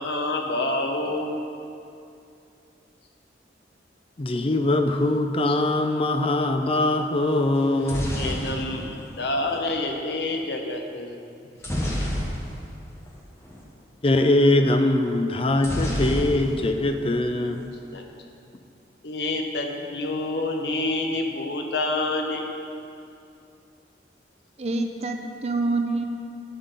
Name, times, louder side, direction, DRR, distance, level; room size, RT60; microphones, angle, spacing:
voice 1, 0.0-1.4 8.1-11.2 17.9-18.2 19.0-22.4, left 2 dB, 70° left, 2 dB, 0.9 m, -28 dB
voice 2, 4.2-8.2 14.0-17.7, left 2 dB, 30° left, 6 dB, 0.5 m, -22 dB
sound 1, 7.6-9.7 11.6-12.8 13.1-13.2 13.4-13.7 15.6-16.8 17.1-17.7, equal, 15° left, 1.1 m, -29 dB
voice 3, 24.6-26.1, right 3 dB, 35° right, 4 dB, 0.5 m, -26 dB
9.1 x 7.7 x 4.0 m, 2.6 s
head